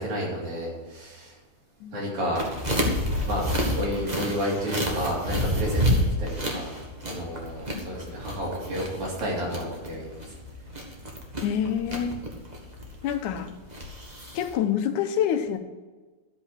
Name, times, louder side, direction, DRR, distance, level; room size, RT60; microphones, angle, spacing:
voice 1, 0.0-1.4 1.9-2.5 3.2-3.5 3.8-6.7 7.0-10.3, equal, 70° right, -5 dB, 4.6 m, -31 dB
sound 1, 2.3-14.5, equal, 45° right, 0.5 m, -29 dB
voice 2, 11.4-12.2 13.0-13.5 14.3-15.6, left 9 dB, 90° left, 8 dB, 2.2 m, -27 dB
13.0 x 5.4 x 6.3 m, 1.3 s
omnidirectional pair, 3.5 m